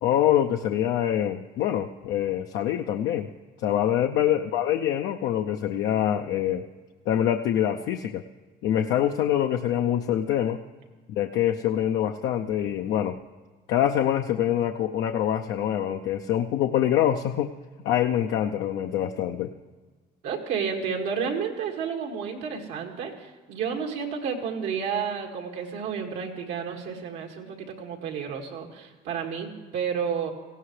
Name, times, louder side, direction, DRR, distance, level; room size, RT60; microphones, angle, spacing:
voice 1, 0.0-3.3 3.6-6.6 7.1-8.2 8.6-10.6 11.1-13.2 13.7-17.5 17.8-19.5, left 10 dB, 80° left, 4 dB, 0.6 m, -25 dB
voice 2, 20.2-30.3, right 6 dB, 90° right, 1 dB, 2.2 m, -31 dB
18.5 x 16.0 x 3.3 m, 1.4 s
cardioid pair, 110°, 17 cm